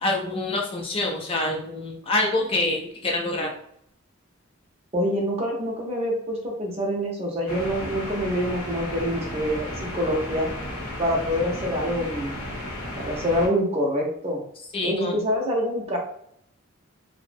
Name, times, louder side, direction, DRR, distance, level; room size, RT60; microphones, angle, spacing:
voice 1, 0.0-3.5 14.7-15.1, left 2 dB, 25° left, 0 dB, 0.3 m, -26 dB
voice 2, 4.9-10.5 11.0-12.4 13.0-14.4 14.8-16.0, equal, 30° right, -1 dB, 0.6 m, -26 dB
sound 1, 7.5-13.5, left 1 dB, 90° left, 0.7 m, -34 dB
2.6 x 2.0 x 2.5 m, 0.70 s
head